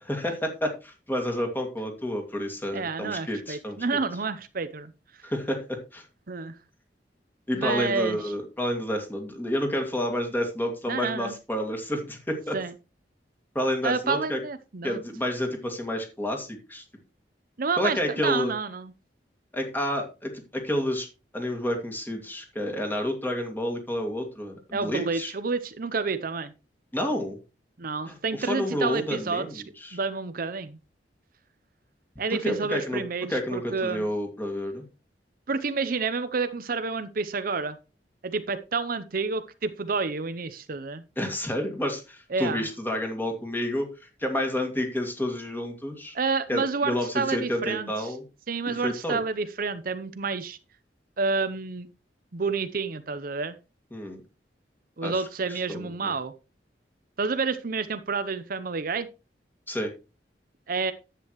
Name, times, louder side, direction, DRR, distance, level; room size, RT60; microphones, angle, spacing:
voice 1, 0.0-3.8 5.2-6.0 7.5-12.6 13.5-14.4 14.8-16.8 17.8-18.5 19.5-21.1 21.3-25.3 26.9-27.4 28.1-30.0 32.4-33.0 33.3-34.8 41.2-46.2 46.5-48.2 48.7-49.2 53.9-54.2 55.0-55.2 55.5-56.2 59.7-59.9, left 1 dB, 10° left, 3 dB, 2.2 m, -30 dB
voice 2, 2.7-4.9 6.3-6.5 7.5-8.2 10.9-11.3 12.5-12.7 13.8-15.0 17.6-18.9 24.7-26.5 27.8-29.6 29.9-30.8 32.2-34.1 35.5-37.8 38.2-41.0 42.3-42.7 46.1-47.9 48.5-50.6 51.2-51.9 52.3-53.6 55.0-56.3 57.2-59.1 60.7-60.9, right 4 dB, 55° right, 11 dB, 0.7 m, -29 dB
10.5 x 8.4 x 3.1 m, 0.29 s
head